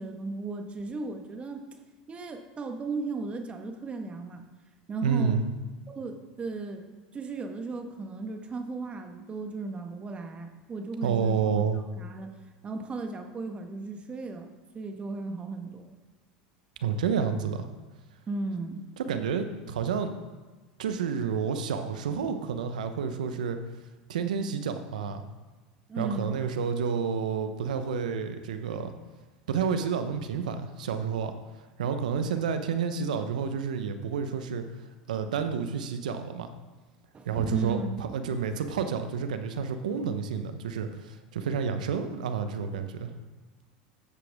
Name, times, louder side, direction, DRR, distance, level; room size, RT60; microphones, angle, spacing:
voice 1, 0.0-1.7 2.1-4.5 4.9-5.3 5.9-6.8 7.1-11.6 12.0-12.4 12.6-14.5 14.7-15.9 18.3-18.8 25.9-26.4 37.1-38.0, right 3 dB, 30° right, 5 dB, 1.4 m, -35 dB
voice 2, 5.0-5.4 11.0-11.8 16.8-17.7 19.0-20.1 20.8-23.6 24.1-25.2 26.0-28.9 29.5-31.3 31.8-34.6 35.1-36.5 37.2-43.1, right 6 dB, 85° right, 8 dB, 0.9 m, -29 dB
13.5 x 7.8 x 3.6 m, 1.3 s
hypercardioid pair, 95°, 4 cm